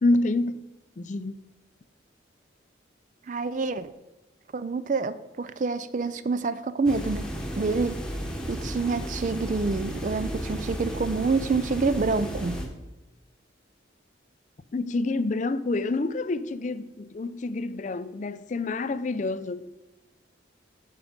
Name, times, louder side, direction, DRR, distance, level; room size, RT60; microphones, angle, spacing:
voice 1, 0.0-0.5 1.0-1.4 14.7-19.7, left 2 dB, 40° left, 0.4 m, -27 dB
voice 2, 3.3-3.9 4.5-7.9 8.5-12.6, right 4 dB, 40° right, 0.4 m, -27 dB
sound 1, 6.8-12.7, equal, 5° left, 1.0 m, -34 dB
9.6 x 6.3 x 5.1 m
head